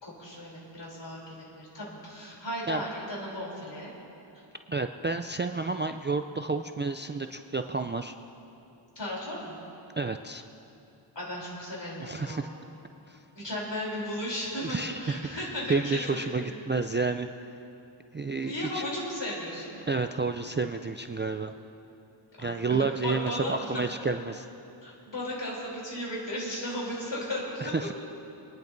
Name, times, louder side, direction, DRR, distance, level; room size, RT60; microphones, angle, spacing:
voice 1, 0.0-3.9 8.9-9.6 11.1-12.5 13.3-16.5 18.3-19.8 22.4-23.8 24.8-27.7, left 1 dB, 60° left, -5 dB, 3.5 m, -35 dB
voice 2, 4.7-8.1 10.0-10.4 12.0-12.5 13.1-13.2 14.6-15.0 15.3-17.3 18.1-18.8 19.9-21.5 22.4-24.5 27.6-27.9, right 4 dB, 25° right, 6 dB, 0.3 m, -30 dB
28.5 x 10.5 x 2.6 m, 2.9 s
wide cardioid pair, 60°, 49 cm